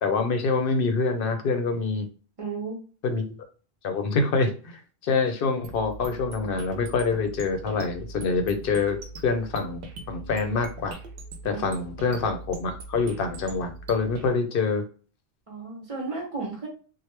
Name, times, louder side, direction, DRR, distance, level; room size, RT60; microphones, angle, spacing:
voice 1, 0.0-2.1 3.0-3.2 3.8-9.0 9.2-11.0 11.4-14.8, left 4 dB, 65° left, 7 dB, 0.7 m, -26 dB
voice 2, 2.4-2.8 11.5-11.6 15.5-16.7, right 4 dB, 35° right, 0 dB, 0.9 m, -33 dB
sound 1, 5.6-14.3, right 3 dB, 70° right, 0.8 m, -41 dB
2.9 x 2.0 x 3.1 m, 0.39 s
omnidirectional pair, 1.0 m